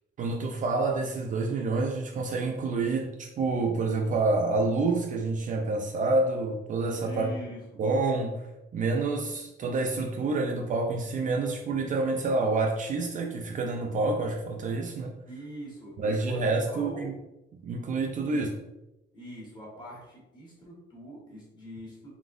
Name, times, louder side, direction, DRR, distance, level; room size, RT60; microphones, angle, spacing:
voice 1, 0.2-7.3 7.8-8.5 8.7-15.1 16.0-17.1 17.5-18.5, right 3 dB, 40° right, 2 dB, 0.4 m, -28 dB
voice 2, 7.0-7.8 15.3-17.1 18.2-18.4 19.1-22.2, equal, 20° left, -5 dB, 1.4 m, -43 dB
4.0 x 3.8 x 2.5 m, 0.93 s
cardioid pair, 180°, 20 cm